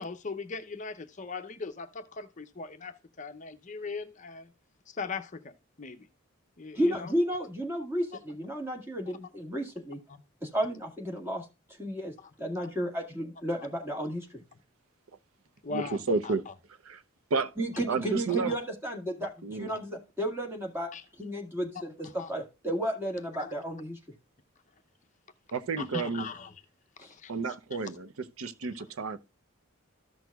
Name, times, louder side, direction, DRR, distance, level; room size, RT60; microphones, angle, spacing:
voice 1, 0.0-4.5 4.9-5.5 5.8-6.1 6.6-7.1 9.1-9.3 15.6-16.3 18.3-18.4 19.7-19.8 20.9-21.0 22.2-22.3 23.4-23.5 25.8-26.5 27.1-27.3, left 4 dB, 35° left, 0.6 m, -39 dB
voice 2, 6.8-10.0 10.4-11.5 11.8-12.1 12.4-14.4 17.6-20.9 21.2-24.0 27.0-27.1, equal, 10° right, 1.8 m, -32 dB
voice 3, 15.7-16.4 16.8-17.0 17.3-17.5 17.9-18.5 19.4-19.7 25.5-26.3 27.3-29.2, right 4 dB, 85° right, 0.7 m, -31 dB
14.0 x 6.1 x 2.2 m
head